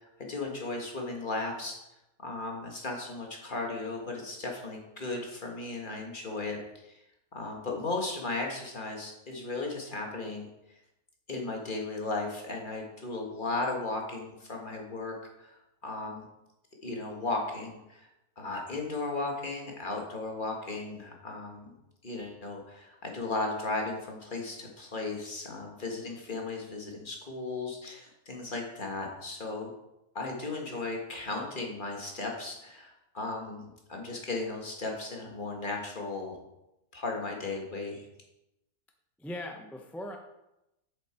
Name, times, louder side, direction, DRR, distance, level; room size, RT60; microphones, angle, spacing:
voice 1, 0.2-1.8 2.2-7.0 7.3-10.5 11.3-15.6 15.8-16.2 16.8-18.1 18.4-21.7 22.0-29.7 30.1-36.4 36.9-38.1, left 3 dB, 35° left, 0 dB, 1.6 m, -36 dB
voice 2, 39.2-40.2, left 1 dB, ahead, 3 dB, 0.4 m, -39 dB
8.2 x 7.2 x 4.4 m, 0.90 s
omnidirectional pair, 1.6 m